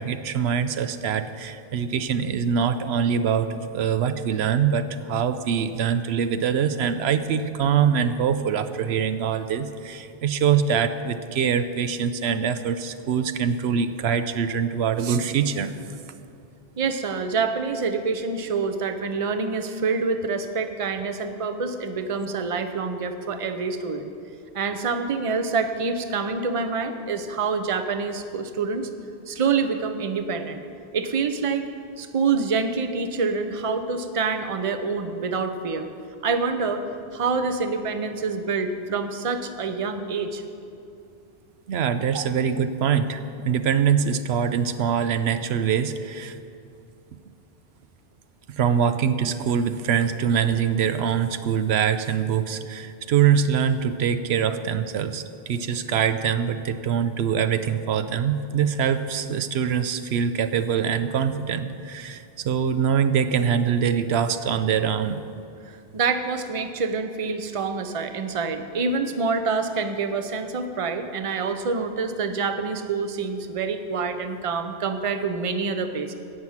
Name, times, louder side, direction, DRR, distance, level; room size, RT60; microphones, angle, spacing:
voice 1, 0.0-15.7 41.7-46.4 48.6-65.2, right 7 dB, 90° right, 11 dB, 0.9 m, -24 dB
voice 2, 16.8-24.1 24.5-28.9 29.3-30.6 30.9-31.7 32.0-35.9 36.2-36.8 37.1-40.4 42.1-42.2 65.6-76.1, right 4 dB, 35° right, 8 dB, 0.7 m, -26 dB
17.0 x 6.1 x 7.2 m, 2.6 s
omnidirectional pair, 1.0 m